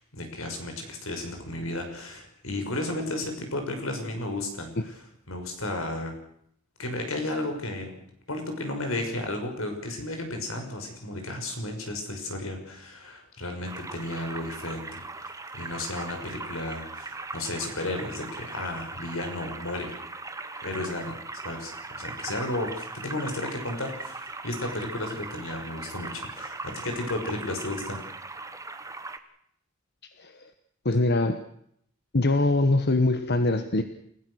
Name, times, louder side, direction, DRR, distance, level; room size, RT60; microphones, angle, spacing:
voice 1, 0.0-4.7 5.3-6.1 6.8-8.0 8.3-15.0 15.5-20.0 20.6-21.1 21.4-28.0, left 2 dB, 80° left, 4 dB, 6.0 m, -33 dB
sound 1, 13.7-29.2, right 3 dB, 15° right, 1.4 m, -39 dB
voice 2, 30.0-30.5 30.8-31.4 32.1-33.8, left 2 dB, 50° left, 9 dB, 1.3 m, -23 dB
29.0 x 16.0 x 6.5 m, 0.71 s
head